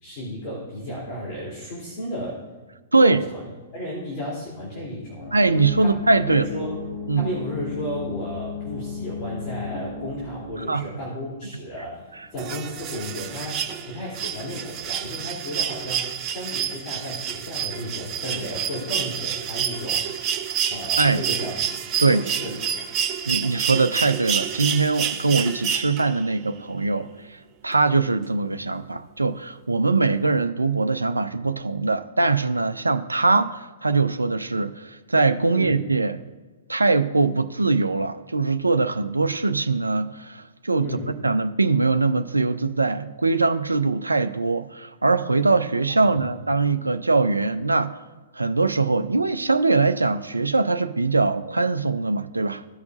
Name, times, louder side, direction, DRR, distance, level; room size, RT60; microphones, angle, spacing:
voice 1, 0.0-2.4 2.9-3.4 3.7-5.3 5.8-5.9 6.3-6.7 7.1-20.0 20.7-21.5 21.9-22.6 35.5-35.7 40.8-41.1 46.0-46.3, equal, 35° left, 3.0 m, -33 dB
voice 2, 2.9-3.2 5.3-6.4 7.1-7.3 10.6-10.8 21.0-21.2 22.0-22.2 23.3-36.2 36.7-47.9 48.3-52.6, right 3 dB, 85° right, 0.5 m, -22 dB
sound 1, 5.2-10.6, left 5 dB, 20° left, 2.5 m, -34 dB
sound 2, 12.4-26.3 27.7-27.8, right 8 dB, 30° right, 0.8 m, -28 dB
15.5 x 5.9 x 2.5 m
figure-of-eight pair, 110°, 0 cm